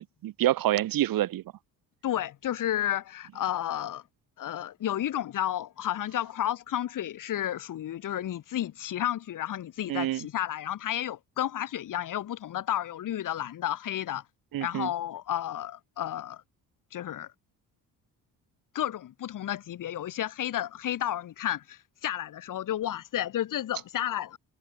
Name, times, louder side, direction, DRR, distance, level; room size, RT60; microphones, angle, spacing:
voice 1, 0.0-1.4 9.9-10.2 14.5-14.9, right 14 dB, 80° right, 4.4 m, -27 dB
voice 2, 2.0-4.0 4.4-14.2 14.6-16.4 16.9-17.3 18.7-24.4, left 11 dB, 65° left, 2.9 m, -32 dB
cardioid pair, 115°, 34 cm